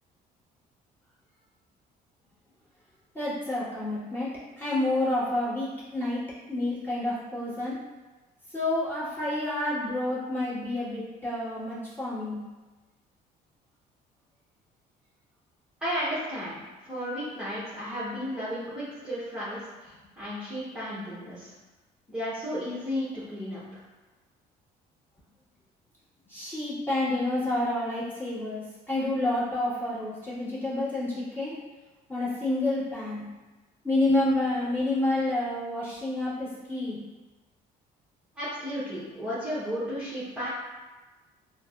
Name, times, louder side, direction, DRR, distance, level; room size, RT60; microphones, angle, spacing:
voice 1, 3.1-6.2 6.5-7.7 8.5-12.4 26.3-31.5 32.1-33.2 33.8-37.0, left 1 dB, 10° left, -11 dB, 1.5 m, -29 dB
voice 2, 15.8-21.5 22.1-23.8 38.4-40.5, equal, 5° right, -12 dB, 0.9 m, -34 dB
4.4 x 2.1 x 2.3 m, 1.2 s
cardioid pair, 110°, 17 cm